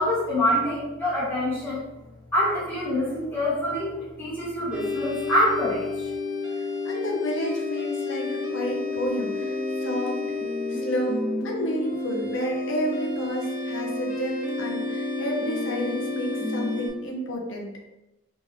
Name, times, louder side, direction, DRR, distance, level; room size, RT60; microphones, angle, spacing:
voice 1, 0.0-1.8 2.3-6.1, left 1 dB, 10° left, -11 dB, 1.2 m, -25 dB
sound 1, 4.7-16.9, left 2 dB, 5° right, 0.9 m, -30 dB
voice 2, 6.5-10.2 10.7-17.7, equal, 70° left, -1 dB, 0.8 m, -31 dB
3.6 x 3.2 x 3.1 m, 0.97 s
head